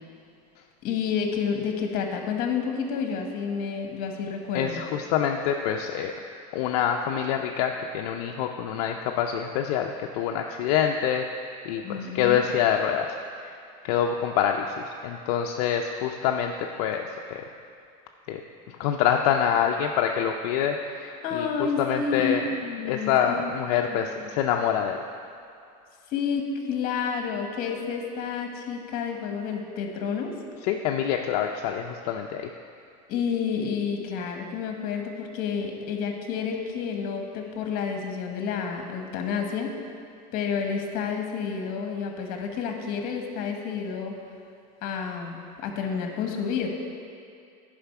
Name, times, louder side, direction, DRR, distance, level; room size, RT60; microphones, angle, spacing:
voice 1, 0.8-4.8 11.8-12.5 21.2-22.4 22.6-24.3 26.1-30.3 33.1-39.8 40.3-44.1 44.8-46.7, left 6 dB, 45° left, 3 dB, 1.2 m, -30 dB
voice 2, 4.5-6.1 6.5-13.5 13.8-17.4 18.3-18.4 18.8-22.5 22.8-25.0 30.6-32.5, left 8 dB, 70° left, 2 dB, 0.5 m, -26 dB
10.0 x 5.0 x 5.8 m, 2.4 s
supercardioid pair, 150°, 20 cm